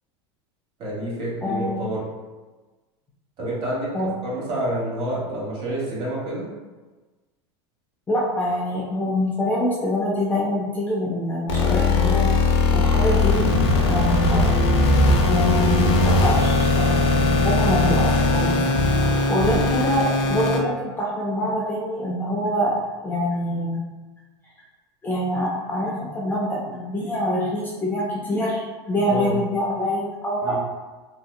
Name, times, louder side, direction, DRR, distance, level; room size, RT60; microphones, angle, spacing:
voice 1, 0.8-2.1 3.4-3.9 4.2-6.5 18.6-18.8 29.1-29.4 30.4-30.6, right 1 dB, 40° right, -6 dB, 1.2 m, -28 dB
voice 2, 1.4-1.9 3.9-4.2 8.1-12.4 12.7-13.5 13.8-14.4 15.0-18.7 19.3-23.8 25.0-30.6, left 1 dB, 15° left, -5 dB, 0.4 m, -25 dB
sound 1, 11.5-20.6, left 2 dB, 80° left, 0.5 m, -19 dB
2.7 x 2.1 x 2.2 m, 1.3 s
supercardioid pair, 115°, 14 cm